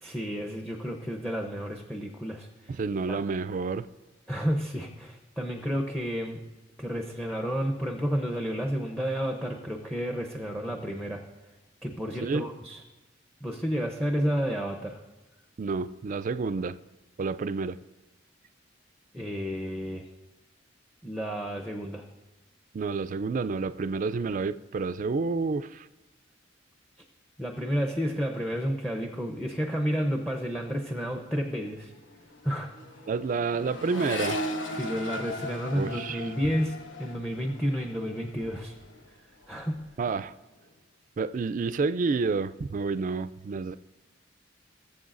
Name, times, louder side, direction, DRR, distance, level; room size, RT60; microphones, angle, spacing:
voice 1, 0.0-2.8 3.1-3.2 4.3-6.4 6.8-11.2 11.8-12.8 13.4-15.0 19.1-20.0 21.0-22.0 27.4-31.9 32.4-32.7 34.7-38.7 39.5-39.9, equal, 5° left, 3 dB, 0.6 m, -31 dB
voice 2, 2.7-3.9 12.2-12.5 15.6-16.8 17.2-17.8 22.7-25.9 33.1-34.4 35.7-36.5 40.0-40.3 41.2-43.8, right 4 dB, 40° right, 14 dB, 0.3 m, -29 dB
Accelerating revving vroom, 31.3-31.4 31.5-39.1 39.4-40.0, left 1 dB, 80° left, 1.0 m, -38 dB
18.5 x 7.6 x 2.5 m, 1.1 s
head